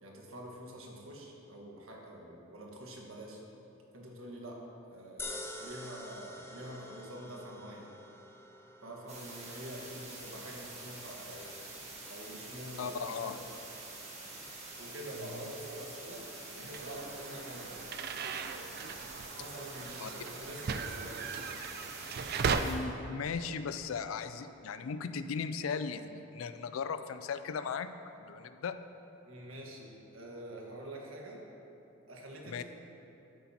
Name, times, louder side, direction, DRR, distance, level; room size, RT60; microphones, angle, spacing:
voice 1, 0.0-3.4 3.9-4.6 4.9-7.9 8.8-11.5 12.1-13.5 14.8-17.8 19.4-21.4 29.3-31.5 32.1-32.6, right 1 dB, 85° right, -1 dB, 1.5 m, -46 dB
sound 1, 5.2-17.5, left 2 dB, 10° left, 0.6 m, -50 dB
sound 2, 9.1-22.7, right 2 dB, 35° right, 1.6 m, -47 dB
voice 2, 12.8-13.4 20.0-20.1 22.6-28.8 32.5-32.6, left 5 dB, 85° left, 11 dB, 0.4 m, -37 dB
sound 3, 16.7-22.6, right 5 dB, 50° right, 0.4 m, -37 dB
11.5 x 8.6 x 2.8 m, 2.9 s
head